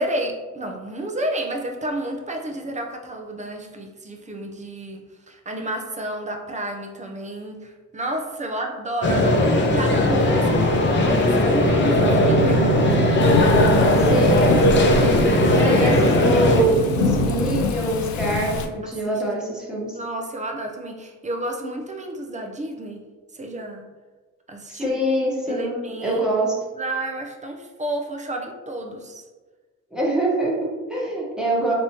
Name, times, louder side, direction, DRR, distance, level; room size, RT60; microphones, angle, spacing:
voice 1, 0.0-12.6 15.6-16.4 19.9-23.1 23.3-23.9 24.5-24.9 25.5-26.3 26.7-29.2, right 1 dB, 25° right, 3 dB, 0.7 m, -31 dB
sound 1, 9.0-16.6, left 1 dB, 40° left, 0.7 m, -18 dB
sound 2, 12.0-17.6, right 7 dB, 75° right, 0.5 m, -26 dB
Thunderstorm / Rain, 13.2-18.7, left 5 dB, 75° left, 0.5 m, -25 dB
voice 2, 14.0-20.0 24.7-26.5 29.9-31.7, right 1 dB, ahead, -6 dB, 1.3 m, -24 dB
4.2 x 3.3 x 2.9 m, 1.3 s
cardioid pair, 90°, 30 cm